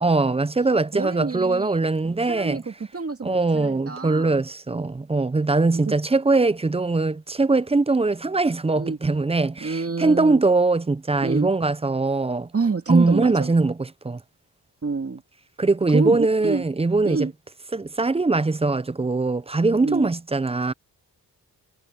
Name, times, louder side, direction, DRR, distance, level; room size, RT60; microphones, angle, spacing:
voice 1, 0.0-2.6 3.2-12.5 12.9-14.2 15.6-17.3 17.7-20.7, right 3 dB, 15° right, 0.4 m, -21 dB
voice 2, 0.9-1.8 2.3-4.4 5.9-6.0 8.8-9.0 9.6-10.4 11.2-11.5 12.5-13.5 14.8-15.2 15.9-16.6 17.0-17.3 19.8-20.1, right 4 dB, 35° right, 2.4 m, -27 dB
wide cardioid pair, 135°, 40 cm